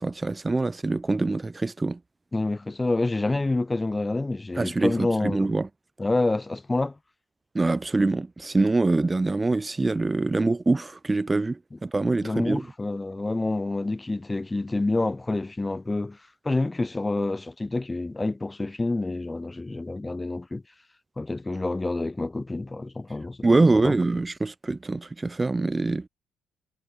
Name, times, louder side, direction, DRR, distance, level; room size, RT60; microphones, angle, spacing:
voice 1, 0.0-2.0 4.6-5.7 7.5-12.7 23.4-26.1, right 3 dB, 15° right, 1.2 m, -24 dB
voice 2, 2.3-5.5 6.0-7.0 11.7-11.8 12.2-16.2 16.4-20.6 21.2-23.9, left 2 dB, 15° left, 3.2 m, -28 dB
cardioid pair, 120°, 0 cm